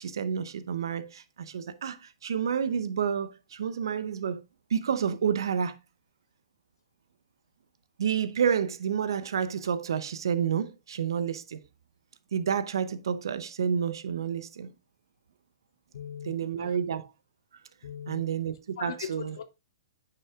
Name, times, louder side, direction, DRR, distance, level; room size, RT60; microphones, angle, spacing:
voice 1, 0.0-4.4 4.7-5.8 8.0-11.6 12.3-14.7 16.2-17.1 18.1-18.5 18.8-19.3, right 7 dB, 70° right, 0.7 m, -29 dB
voice 2, 15.9-16.8 17.8-18.2 18.8-19.4, left 8 dB, 70° left, 0.6 m, -40 dB
9.4 x 5.8 x 2.4 m
hypercardioid pair, 120°, 2 cm